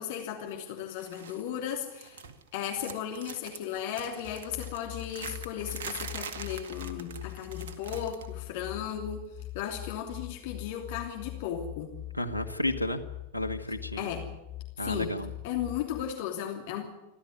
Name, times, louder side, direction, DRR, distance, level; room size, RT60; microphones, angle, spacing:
voice 1, 0.0-2.2 2.5-9.2 9.5-12.0 14.0-14.3 14.8-15.1 15.4-16.8, left 9 dB, 50° left, 3 dB, 3.0 m, -35 dB
sound 1, 1.0-1.4 1.7-2.5 2.8-8.3 8.6-8.9 10.0-10.1, right 6 dB, 60° right, 2.0 m, -43 dB
sound 2, 4.2-16.0, left 15 dB, 30° left, 2.9 m, -43 dB
voice 2, 12.1-13.0 13.3-14.1 14.8-15.3, left 1 dB, 90° right, 10 dB, 1.5 m, -32 dB
28.5 x 12.5 x 9.7 m, 0.98 s
figure-of-eight pair, 90°, 0 cm